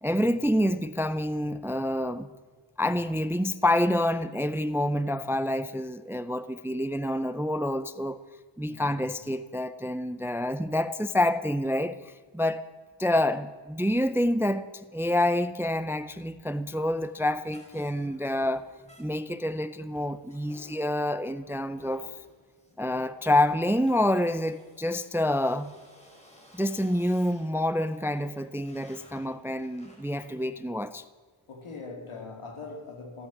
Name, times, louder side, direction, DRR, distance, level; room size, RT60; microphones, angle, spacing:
voice 1, 0.0-2.3 2.8-8.2 8.6-12.6 13.0-18.7 19.0-22.1 22.8-25.7 26.5-31.0, left 1 dB, 5° right, 0.4 m, -27 dB
voice 2, 8.7-9.2 22.5-22.8 31.5-33.3, left 3 dB, 75° left, 2.8 m, -43 dB
sound 1, 17.4-30.4, equal, 15° left, 4.0 m, -56 dB
15.5 x 11.0 x 7.0 m
wide cardioid pair, 120°, 50 cm